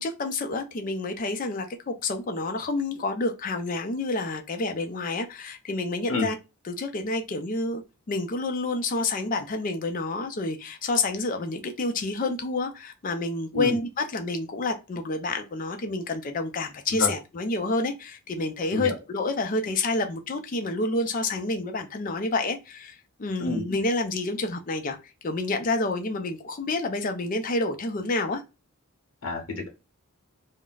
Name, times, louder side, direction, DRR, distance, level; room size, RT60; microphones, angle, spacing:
voice 1, 0.0-6.4 6.7-7.8 8.1-25.0 25.2-28.4, left 2 dB, 40° left, 0.4 m, -29 dB
voice 2, 29.2-29.7, left 2 dB, 70° left, 0.8 m, -28 dB
2.3 x 2.1 x 3.8 m
head